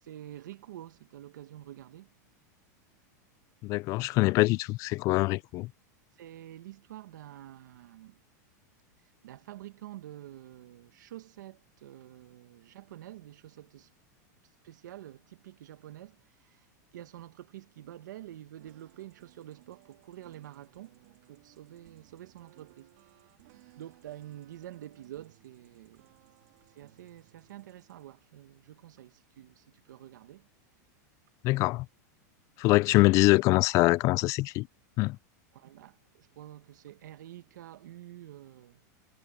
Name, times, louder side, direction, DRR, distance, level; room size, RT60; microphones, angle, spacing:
voice 1, 0.0-2.1 6.2-8.2 9.2-13.9 14.6-16.7 16.9-23.0 23.7-26.1 26.7-30.5 35.5-38.8, right 13 dB, 85° right, 1.6 m, -48 dB
voice 2, 3.6-5.7 31.4-31.9 32.6-34.7 35.0-35.2, left 21 dB, 35° left, 0.3 m, -24 dB
sound 1, 18.6-28.0, right 21 dB, 60° right, 4.2 m, -61 dB
supercardioid pair, 155°, 10 cm